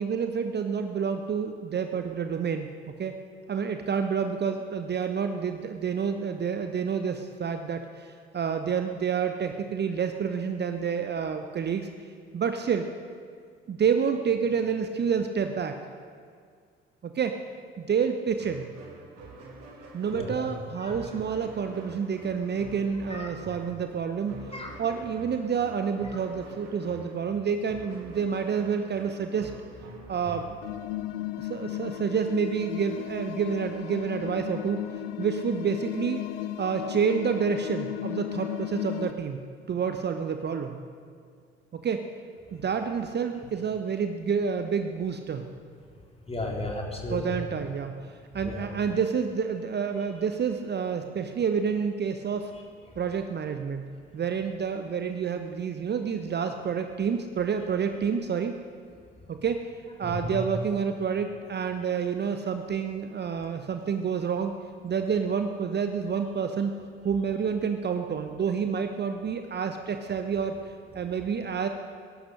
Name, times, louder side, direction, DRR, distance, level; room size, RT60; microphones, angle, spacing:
voice 1, 0.0-3.1 3.5-11.9 12.3-12.8 13.7-15.8 17.0-17.4 17.8-18.7 19.9-24.4 24.8-29.5 30.1-30.6 31.4-34.8 35.2-36.3 36.6-39.4 39.7-40.8 41.7-42.0 42.5-45.5 47.1-47.9 48.3-52.5 53.0-53.9 54.1-58.5 59.3-59.7 60.0-64.5 64.8-66.7 67.0-70.6 70.9-71.7, right 6 dB, 35° right, 7 dB, 0.9 m, -28 dB
sound 1, 18.4-30.5, right 2 dB, 60° right, 2.7 m, -46 dB
voice 2, 20.1-20.5 20.8-20.9 23.1-23.4 24.5-24.8 45.9-47.2 48.4-48.7 52.5-52.9 60.0-60.4 71.1-71.2, left 2 dB, 20° left, 0 dB, 3.4 m, -35 dB
sound 2, 30.6-39.1, left 14 dB, 70° left, 0.6 m, -35 dB
19.0 x 11.5 x 6.6 m, 2.1 s
figure-of-eight pair, 50°, 30 cm